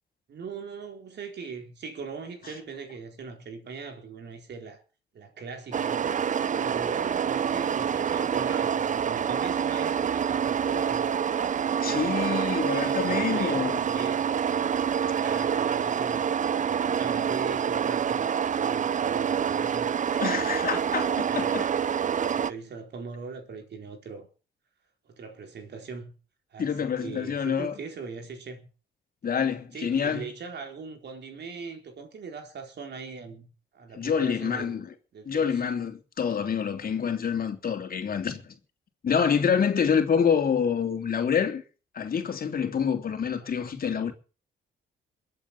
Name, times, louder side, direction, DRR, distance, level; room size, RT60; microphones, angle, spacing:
voice 1, 0.3-4.8 5.1-11.1 11.6-12.4 12.7-14.2 15.1-16.2 16.6-21.7 22.1-24.3 25.0-26.1 26.5-28.7 29.7-34.9 35.1-35.6 43.4-43.5, right 5 dB, 60° right, 4.3 m, -40 dB
sound 1, 5.7-22.5, right 8 dB, 40° right, 0.6 m, -27 dB
voice 2, 11.8-13.8 20.2-21.0 21.3-21.7 26.6-27.7 29.2-30.2 34.0-34.9 35.3-38.4 39.0-41.6 41.9-44.1, left 7 dB, 45° left, 3.0 m, -27 dB
22.0 x 8.5 x 5.9 m
cardioid pair, 90°, 20 cm